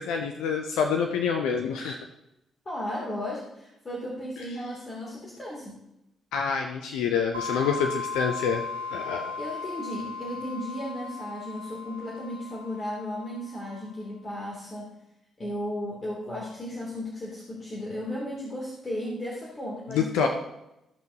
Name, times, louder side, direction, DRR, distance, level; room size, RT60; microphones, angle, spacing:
voice 1, 0.0-2.1 6.3-8.6 8.9-9.4 19.9-20.3, left 6 dB, 70° left, 3 dB, 0.6 m, -27 dB
voice 2, 2.6-5.8 9.4-14.9 15.4-20.3, left 1 dB, 35° left, -6 dB, 2.8 m, -35 dB
sound 1, 7.3-13.9, left 4 dB, 85° right, 0.6 m, -37 dB
15.0 x 5.8 x 2.9 m, 0.88 s
figure-of-eight pair, 40°, 0 cm